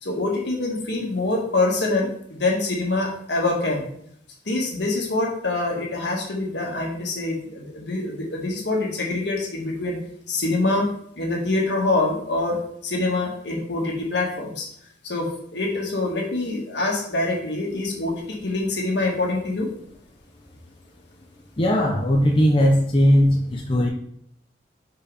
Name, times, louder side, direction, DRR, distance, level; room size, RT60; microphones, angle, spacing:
voice 1, 0.0-3.9 4.5-10.0 10.3-14.7 15.0-19.7, left 2 dB, 65° left, -1 dB, 1.7 m, -25 dB
voice 2, 21.6-23.9, equal, 25° left, -1 dB, 0.6 m, -18 dB
5.1 x 4.7 x 4.9 m, 0.70 s
head